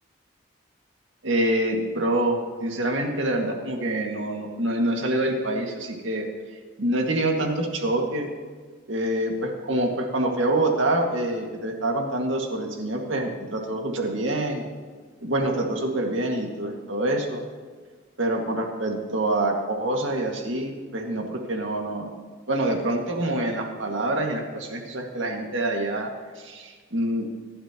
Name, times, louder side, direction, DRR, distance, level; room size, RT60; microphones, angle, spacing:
voice 1, 1.2-6.3 6.8-8.3 8.9-14.7 15.2-17.4 18.2-22.1 22.5-26.1 26.4-27.3, right 1 dB, 75° right, 1 dB, 2.0 m, -26 dB
25.0 x 11.5 x 3.0 m, 1.5 s
head